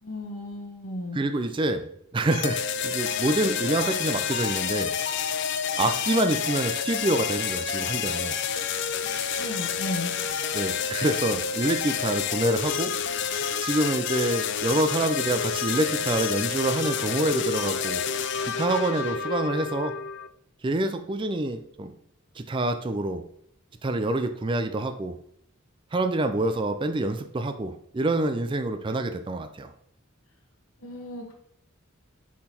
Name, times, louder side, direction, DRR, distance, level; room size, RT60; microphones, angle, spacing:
voice 1, 0.0-1.2 9.4-10.1 30.8-31.3, left 1 dB, 75° left, 2 dB, 1.2 m, -34 dB
voice 2, 1.1-1.9 2.1-5.0 5.8-8.4 10.5-12.9 13.6-18.0 18.4-19.9 20.6-21.9 22.4-23.2 23.8-25.2 25.9-29.7, right 2 dB, 25° right, 7 dB, 0.4 m, -27 dB
sound 1, 2.3-20.3, left 7 dB, 55° left, 0.4 m, -29 dB
6.3 x 3.9 x 4.2 m, 0.72 s
head